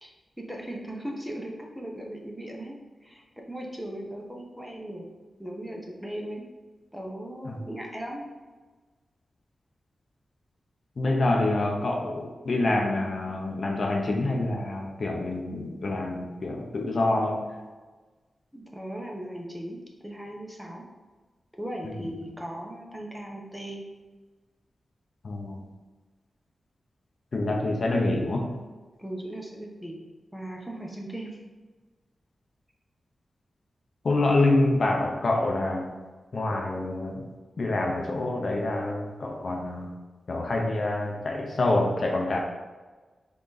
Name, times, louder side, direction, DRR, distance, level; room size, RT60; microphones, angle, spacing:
voice 1, 0.4-5.1 5.4-6.5 6.9-8.3 18.5-20.8 21.6-23.8 29.0-30.0 30.3-31.4, right 1 dB, ahead, -1 dB, 0.8 m, -38 dB
voice 2, 11.0-17.4 25.2-25.6 27.3-28.5 34.0-35.9 36.3-37.2 37.6-39.9 40.3-42.4, left 2 dB, 55° left, 1 dB, 0.6 m, -26 dB
3.8 x 3.6 x 3.9 m, 1.3 s
wide cardioid pair, 90°, 0 cm